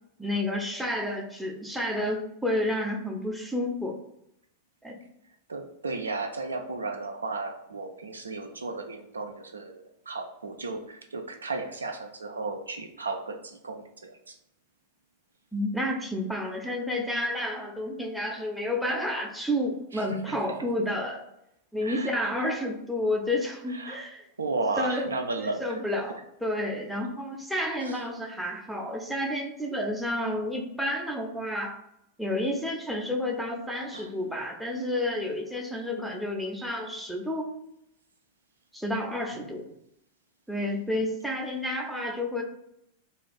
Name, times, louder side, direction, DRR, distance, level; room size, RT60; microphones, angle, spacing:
voice 1, 0.2-4.0 4.8-5.0 15.5-21.2 21.7-24.3 24.8-25.1 25.4-31.8 32.2-37.5 38.7-39.6 40.5-42.4, left 1 dB, ahead, 1 dB, 0.5 m, -30 dB
voice 2, 5.5-14.4 19.9-20.4 21.8-22.3 23.7-24.0 24.4-25.8 27.8-28.0 33.9-34.1 39.3-39.5, right 3 dB, 75° right, 4 dB, 0.3 m, -34 dB
2.4 x 2.3 x 3.3 m, 0.78 s
figure-of-eight pair, 90°, 0 cm